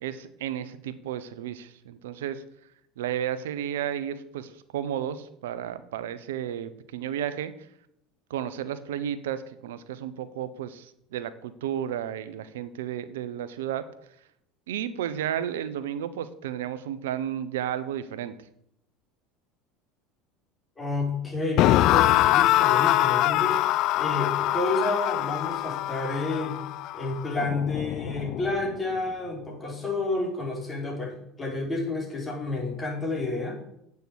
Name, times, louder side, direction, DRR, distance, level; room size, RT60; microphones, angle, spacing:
voice 1, 0.0-2.4 3.0-7.5 8.3-13.8 14.7-18.4, right 10 dB, 80° right, 13 dB, 0.9 m, -33 dB
voice 2, 20.8-26.6 26.9-33.6, left 2 dB, 20° left, -2 dB, 5.2 m, -30 dB
sound 1, 21.6-28.7, left 15 dB, 60° left, 0.3 m, -24 dB
8.6 x 6.8 x 8.2 m, 0.76 s
hypercardioid pair, 85°, 0 cm